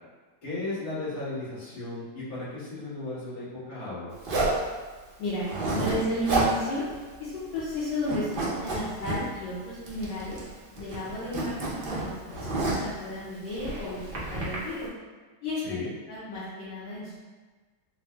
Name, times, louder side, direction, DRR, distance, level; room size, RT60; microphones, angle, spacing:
voice 1, 0.4-4.1 15.6-15.9, left 2 dB, 50° left, -11 dB, 1.9 m, -35 dB
Zipper (clothing), 4.2-4.6 5.4-6.0 6.2-6.5 6.9-7.0 7.3-7.8 8.0-9.2 9.9-10.5 10.8-12.9 13.5-14.6, right 2 dB, 90° right, 0.4 m, -30 dB
voice 2, 5.2-6.8 7.2-10.4 10.8-14.9 15.4-15.8 16.1-17.1, left 1 dB, 75° left, -10 dB, 1.6 m, -33 dB
4.2 x 2.0 x 3.3 m, 1.4 s
omnidirectional pair, 2.0 m